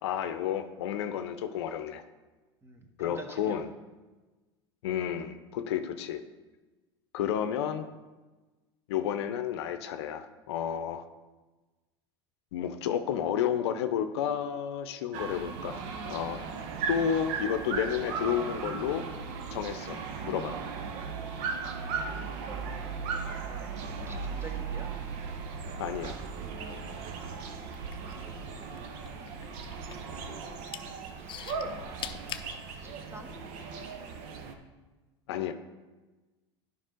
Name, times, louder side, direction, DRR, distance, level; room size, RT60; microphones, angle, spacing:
voice 1, 0.0-2.0 3.0-3.7 4.8-6.2 7.1-7.9 8.9-11.0 12.5-16.4 16.9-19.1 19.5-20.0 20.2-20.6 25.8-26.2 35.3-35.5, left 9 dB, 75° left, 10 dB, 0.6 m, -31 dB
voice 2, 2.6-3.6 22.0-23.7 24.0-24.9 28.0-29.6 32.8-33.4, right 1 dB, 15° right, 4 dB, 1.3 m, -50 dB
sound 1, 15.1-34.6, right 5 dB, 60° right, 1.0 m, -37 dB
sound 2, 27.6-28.8 29.1-30.1 30.5-30.8 31.3-32.5 33.2-33.3, left 10 dB, 35° left, 0.6 m, -40 dB
11.0 x 5.4 x 3.8 m, 1.2 s
hypercardioid pair, 90°, 14 cm